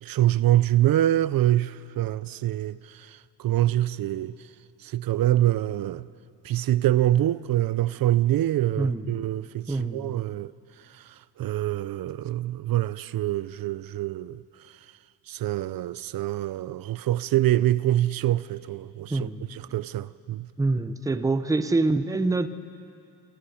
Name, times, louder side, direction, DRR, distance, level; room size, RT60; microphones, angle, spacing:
voice 1, 0.0-4.3 4.8-6.0 6.4-10.5 11.4-14.4 15.3-20.5, right 13 dB, 65° right, 0.5 m, -25 dB
voice 2, 8.8-9.3 9.7-10.2 19.1-19.5 20.6-22.5, right 3 dB, 10° right, 0.6 m, -26 dB
27.5 x 19.5 x 8.5 m
wide cardioid pair, 170°, 38 cm